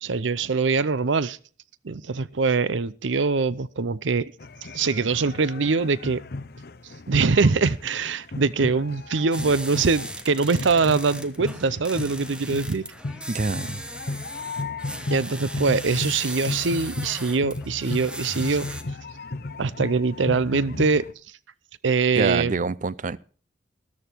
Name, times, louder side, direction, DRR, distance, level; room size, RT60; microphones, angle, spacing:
voice 1, 0.0-1.4 1.8-4.3 4.7-6.2 7.1-12.8 15.1-18.7 19.6-21.0 21.8-22.5, right 4 dB, 80° right, 0.7 m, -23 dB
sound 1, 4.4-21.1, left 2 dB, 55° left, 0.8 m, -35 dB
sound 2, 9.3-18.8, right 1 dB, 5° right, 1.1 m, -37 dB
voice 2, 13.3-13.8 22.2-23.2, right 4 dB, 45° right, 0.5 m, -26 dB
13.5 x 13.0 x 4.5 m
head